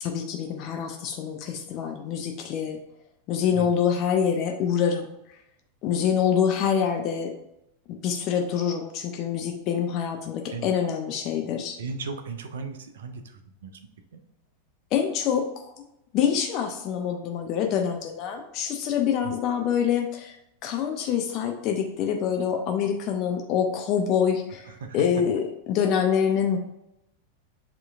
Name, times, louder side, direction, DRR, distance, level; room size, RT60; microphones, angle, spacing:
voice 1, 0.0-2.8 3.3-5.1 5.8-7.3 7.9-11.8 14.9-15.8 16.1-20.3 20.6-26.6, left 8 dB, 40° left, 3 dB, 0.5 m, -26 dB
voice 2, 11.8-13.2 13.6-13.7 19.2-19.3 24.8-25.0, right 4 dB, 60° right, 6 dB, 0.5 m, -35 dB
7.1 x 3.0 x 2.4 m, 0.83 s
figure-of-eight pair, 90°, 0 cm